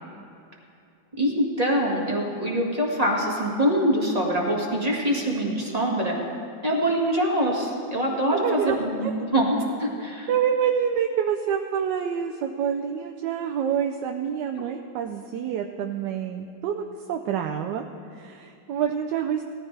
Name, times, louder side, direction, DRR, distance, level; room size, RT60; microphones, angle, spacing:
voice 1, 1.2-6.2 6.6-10.3, equal, 20° right, -2 dB, 1.7 m, -24 dB
voice 2, 8.3-8.8 9.0-9.1 10.0-16.8 17.1-17.8 18.1-19.4, right 8 dB, 70° right, 3 dB, 1.1 m, -27 dB
19.5 x 14.0 x 3.3 m, 2.6 s
omnidirectional pair, 2.2 m